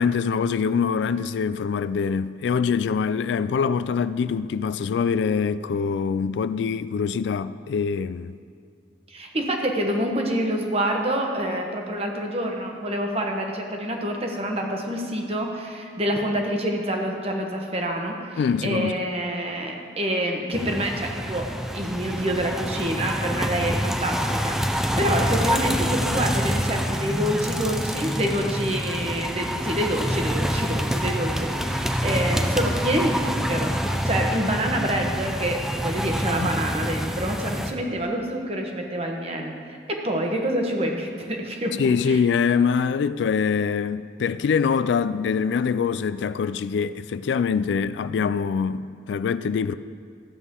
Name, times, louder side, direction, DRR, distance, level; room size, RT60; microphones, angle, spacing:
voice 1, 0.0-8.4 18.4-19.0 36.4-36.5 41.8-49.7, left 6 dB, 85° left, 0.3 m, -24 dB
voice 2, 9.1-33.7 34.0-41.8 42.1-42.2, right 1 dB, 35° right, 1.1 m, -27 dB
sound 1, 20.5-37.7, equal, 5° right, 0.4 m, -26 dB
13.5 x 8.1 x 3.7 m
head